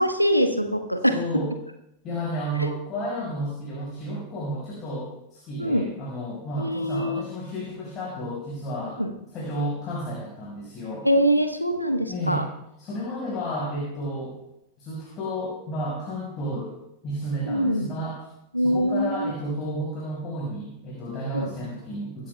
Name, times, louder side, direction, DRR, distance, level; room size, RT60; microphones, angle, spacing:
voice 1, 0.0-1.1 2.6-2.7 5.6-5.8 6.6-7.2 9.0-9.1 11.0-12.4 17.5-17.9 18.5-19.3 21.3-21.5, equal, 90° left, 7 dB, 1.2 m, -23 dB
voice 2, 1.1-1.5 2.0-9.0 9.3-11.1 12.1-12.5 12.8-14.4 14.8-16.7 17.0-18.2 18.6-22.3, equal, 30° left, -4 dB, 5.4 m, -32 dB
24.0 x 13.0 x 2.3 m, 0.83 s
figure-of-eight pair, 90°, 0 cm